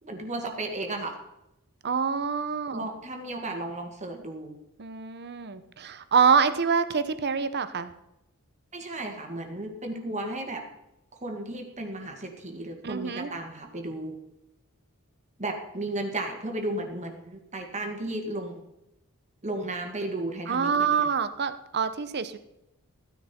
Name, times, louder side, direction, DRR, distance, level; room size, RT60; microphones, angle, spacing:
voice 1, 0.0-1.2 2.7-4.6 8.7-10.6 11.2-14.2 15.4-18.6 19.4-21.1, right 2 dB, 30° right, 3 dB, 1.9 m, -34 dB
voice 2, 1.8-2.8 4.8-7.9 12.8-13.3 20.5-22.4, right 6 dB, 50° right, 12 dB, 0.9 m, -26 dB
15.0 x 10.5 x 4.4 m, 0.86 s
head